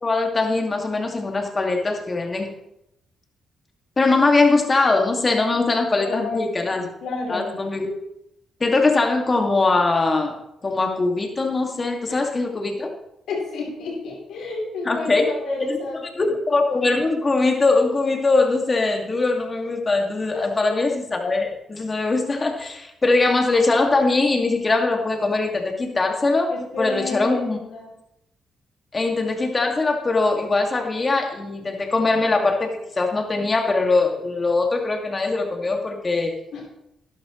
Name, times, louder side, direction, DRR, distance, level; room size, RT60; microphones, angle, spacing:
voice 1, 0.0-2.5 4.0-6.9 7.3-7.9 8.6-10.3 10.6-12.9 14.8-15.2 15.6-15.8 16.2-26.5 26.8-27.6 28.9-36.3, left 3 dB, 35° left, 3 dB, 2.3 m, -21 dB
voice 2, 6.0-6.6 7.0-7.5 12.1-12.2 13.3-16.3 20.3-20.8 26.5-27.8 36.5-36.6, left 3 dB, 75° left, -2 dB, 4.2 m, -30 dB
12.0 x 11.0 x 3.2 m, 0.84 s
supercardioid pair, 55°, 0 cm